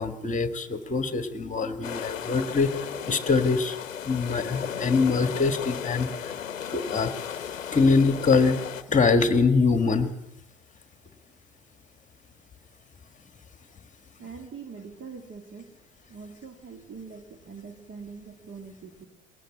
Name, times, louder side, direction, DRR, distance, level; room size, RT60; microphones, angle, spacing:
voice 1, 0.0-3.8 4.0-6.3 6.7-8.6 8.9-10.1, left 4 dB, 20° left, 9 dB, 1.8 m, -24 dB
sound 1, 1.8-8.8, left 8 dB, 90° left, 0.9 m, -35 dB
voice 2, 14.2-15.8 16.1-19.1, right 5 dB, 30° right, 6 dB, 2.2 m, -43 dB
21.0 x 18.0 x 7.3 m, 0.88 s
hypercardioid pair, 80°, 38 cm